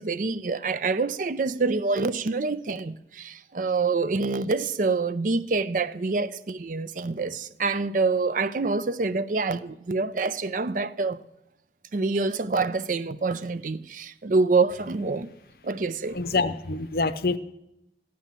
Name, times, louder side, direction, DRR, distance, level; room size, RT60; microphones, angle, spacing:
voice 1, 0.0-11.2 11.9-15.3 15.6-16.2, right 3 dB, 45° right, 0.5 m, -26 dB
voice 2, 16.1-17.4, left 3 dB, 55° left, 0.7 m, -26 dB
14.5 x 10.5 x 7.5 m
head